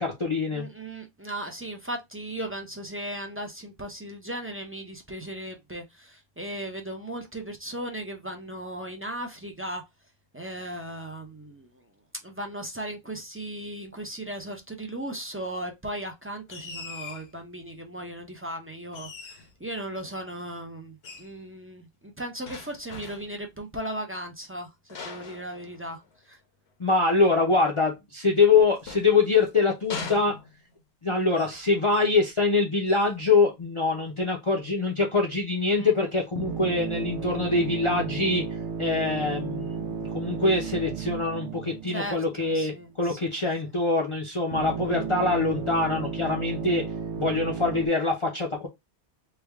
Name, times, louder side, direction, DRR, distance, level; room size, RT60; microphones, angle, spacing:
voice 1, 0.0-0.7 26.8-30.4 31.0-38.4 38.8-46.8 47.2-48.7, left 3 dB, 35° left, 0.6 m, -24 dB
voice 2, 0.5-9.8 10.3-11.7 12.2-24.7 25.0-26.0 26.3-26.4 35.8-35.9 41.9-43.2, right 1 dB, 20° right, 0.4 m, -37 dB
sound 1, 16.5-17.3 18.9-19.6 21.0-21.3 22.5-23.4 24.9-26.2 28.4-29.5 29.9-30.8 31.3-31.6 31.9-32.2 32.9-33.2, left 4 dB, 65° left, 1.1 m, -41 dB
sound 2, 36.4-42.7 44.5-47.9, right 6 dB, 80° right, 0.9 m, -33 dB
3.3 x 2.2 x 3.4 m
omnidirectional pair, 1.1 m